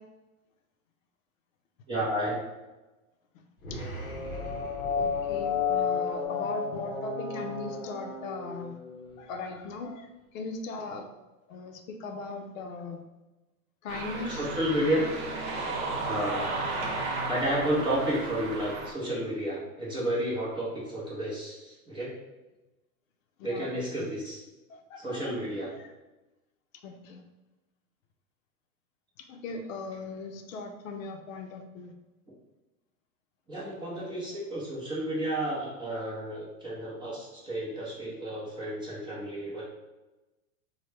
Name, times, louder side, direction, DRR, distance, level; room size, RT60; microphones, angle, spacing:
voice 1, 1.9-2.4 14.3-15.1 16.0-16.5 17.3-22.1 23.4-24.4 25.0-25.7 33.5-39.6, right 1 dB, 10° right, -7 dB, 0.6 m, -31 dB
sound 1, 3.6-9.2, left 6 dB, 35° left, 1.1 m, -32 dB
voice 2, 5.0-8.8 9.2-10.1 10.3-11.1 11.5-13.0 13.8-14.5 23.4-23.7 24.7-25.9 26.8-27.2 29.3-31.9, left 3 dB, 65° left, 4 dB, 0.5 m, -39 dB
sound 2, 13.9-18.9, right 3 dB, 65° right, 0.9 m, -33 dB
3.0 x 2.1 x 3.3 m, 1.1 s
hypercardioid pair, 130°, 44 cm